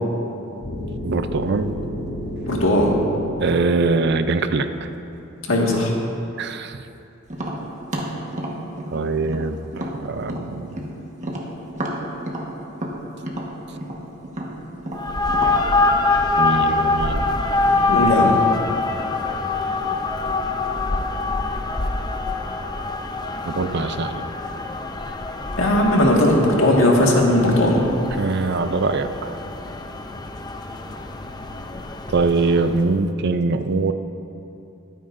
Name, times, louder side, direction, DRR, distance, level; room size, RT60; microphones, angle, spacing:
sound 1, 0.6-4.7, equal, 60° left, 1.8 m, -32 dB
voice 1, 1.0-1.8 3.4-4.9 6.4-6.8 8.9-10.8 16.4-17.3 17.6-18.0 23.4-24.2 28.2-29.4 32.1-33.9, right 3 dB, 60° right, 10 dB, 0.5 m, -23 dB
voice 2, 2.5-2.9 5.5-5.9 17.9-18.4 25.6-27.8, left 1 dB, 80° left, -2 dB, 1.9 m, -17 dB
Tap, 7.3-10.9 11.2-15.6, right 1 dB, 40° right, 1.4 m, -30 dB
sound 2, 14.9-32.9, left 3 dB, 20° left, 0.5 m, -24 dB
22.5 x 9.2 x 2.6 m, 2.8 s
head